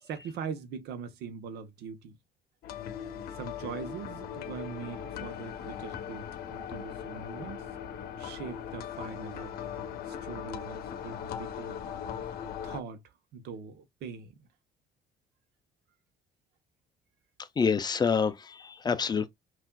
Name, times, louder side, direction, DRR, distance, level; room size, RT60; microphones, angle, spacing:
voice 1, 0.0-2.2 3.3-7.6 8.2-11.8 12.6-14.5, right 6 dB, 85° right, 1.0 m, -42 dB
sound 1, 2.6-12.8, left 8 dB, 70° left, 0.8 m, -39 dB
voice 2, 17.6-19.3, left 6 dB, 25° left, 0.5 m, -27 dB
5.8 x 2.6 x 2.2 m
cardioid pair, 130°, 16 cm